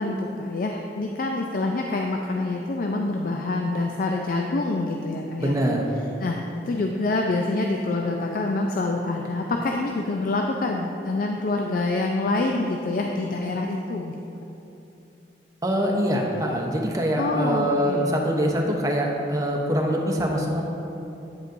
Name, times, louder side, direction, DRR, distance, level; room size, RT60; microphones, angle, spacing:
voice 1, 0.0-5.5 6.2-6.4 6.6-14.1 17.2-18.2, left 2 dB, 50° left, 2 dB, 0.4 m, -26 dB
voice 2, 5.4-5.9 15.6-20.6, equal, 20° right, 0 dB, 0.8 m, -24 dB
8.8 x 8.0 x 2.6 m, 2.9 s
head